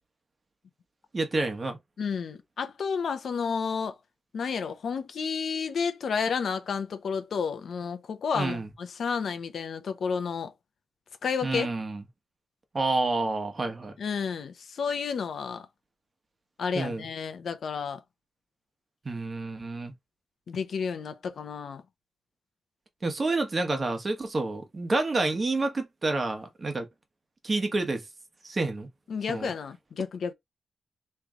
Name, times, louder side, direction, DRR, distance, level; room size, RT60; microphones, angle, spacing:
voice 1, 1.1-1.8 8.3-8.7 11.4-12.0 12.7-13.9 16.7-17.1 19.0-19.9 23.0-26.9 27.4-28.0 28.4-28.9 29.3-29.5, right 2 dB, 35° right, 1.2 m, -29 dB
voice 2, 2.0-4.0 4.3-10.5 11.2-11.7 14.0-15.7 16.6-18.0 20.5-21.8 29.1-30.3, left 6 dB, 70° left, 0.8 m, -31 dB
3.3 x 3.1 x 3.7 m
cardioid pair, 100°, 0 cm